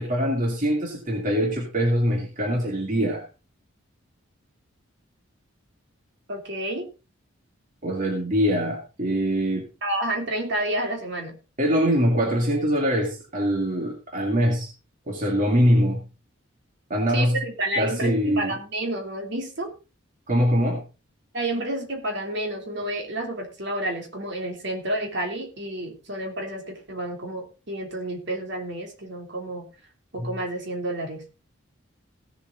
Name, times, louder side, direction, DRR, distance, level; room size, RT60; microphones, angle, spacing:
voice 1, 0.0-3.2 7.8-9.7 11.6-14.7 15.1-16.1 16.9-17.4 17.7-18.5 20.3-20.8 30.2-30.3, equal, 40° right, 1 dB, 2.1 m, -23 dB
voice 2, 6.3-6.9 9.8-11.4 17.1-19.7 21.3-29.7 30.1-31.2, right 1 dB, 60° right, 3 dB, 3.2 m, -30 dB
16.5 x 7.5 x 3.9 m, 0.31 s
head